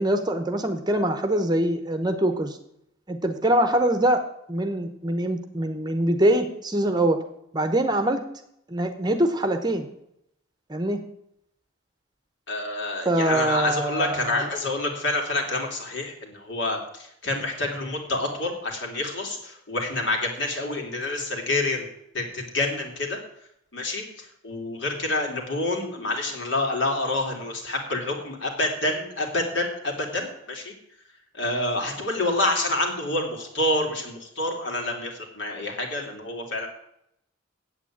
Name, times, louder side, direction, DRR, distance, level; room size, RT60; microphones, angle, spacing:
voice 1, 0.0-2.6 3.1-4.2 4.5-7.2 7.5-8.2 8.7-9.9 10.7-11.0 13.0-14.5, right 1 dB, 20° right, 8 dB, 0.9 m, -23 dB
voice 2, 12.5-21.9 22.1-23.2 23.7-24.0 24.4-30.7 31.4-36.7, left 2 dB, 60° left, 2 dB, 2.9 m, -27 dB
9.0 x 8.1 x 8.7 m, 0.77 s
head